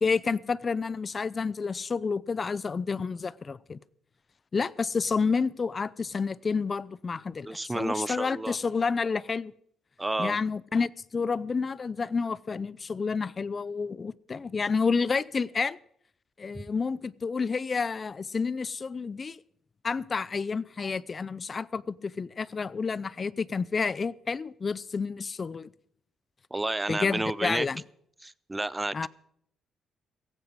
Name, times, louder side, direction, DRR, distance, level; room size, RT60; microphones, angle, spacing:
voice 1, 0.0-3.8 4.5-9.5 10.2-15.8 16.4-19.4 19.8-25.7 26.9-27.8 28.9-29.1, left 5 dB, 35° left, 0.5 m, -30 dB
voice 2, 7.5-8.6 10.0-10.4 16.5-16.7 26.5-27.7 28.2-29.1, right 2 dB, 15° right, 0.5 m, -31 dB
16.5 x 15.0 x 4.8 m
cardioid pair, 90°, 0 cm